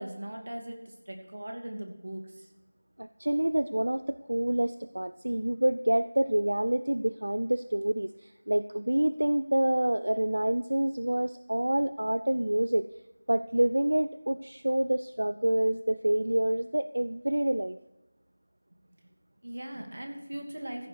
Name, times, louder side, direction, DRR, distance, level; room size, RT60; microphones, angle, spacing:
voice 1, 0.0-2.5 18.9-19.0 19.4-20.9, right 1 dB, 60° right, 3 dB, 2.6 m, -39 dB
voice 2, 3.0-12.9 13.3-17.8, right 1 dB, 85° right, 14 dB, 0.4 m, -27 dB
15.0 x 9.2 x 4.8 m, 0.99 s
figure-of-eight pair, 180°, 0 cm